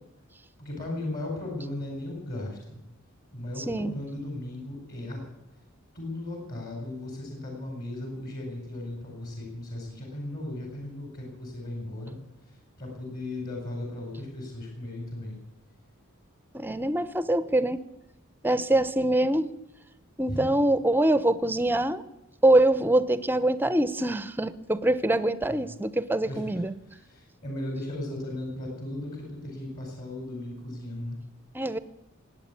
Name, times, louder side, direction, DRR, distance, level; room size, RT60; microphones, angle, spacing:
voice 1, 0.6-2.8 3.3-5.2 5.9-12.2 12.8-15.4 20.3-20.5 25.5-25.7 26.3-31.2, left 1 dB, 45° left, 1 dB, 4.6 m, -36 dB
voice 2, 16.5-17.8 18.4-19.5 20.2-22.0 22.4-26.7 31.5-31.8, right 1 dB, 10° right, 15 dB, 0.7 m, -24 dB
19.0 x 8.9 x 8.5 m, 0.90 s
head